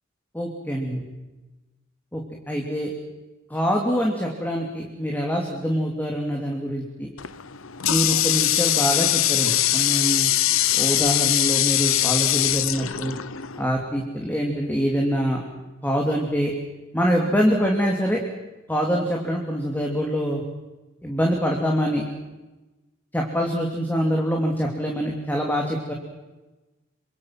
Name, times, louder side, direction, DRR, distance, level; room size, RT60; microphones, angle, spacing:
voice 1, 0.3-1.0 2.1-2.2 2.5-2.9 3.5-7.1 7.9-10.3 10.7-13.1 13.6-15.4 15.8-16.5 16.9-18.2 18.7-20.4 21.0-22.0 23.1-25.9, equal, 10° left, 0 dB, 3.1 m, -24 dB
Water tap faucet, 7.2-13.7, left 13 dB, 80° left, 0.9 m, -22 dB
27.0 x 25.5 x 6.1 m, 1.1 s
head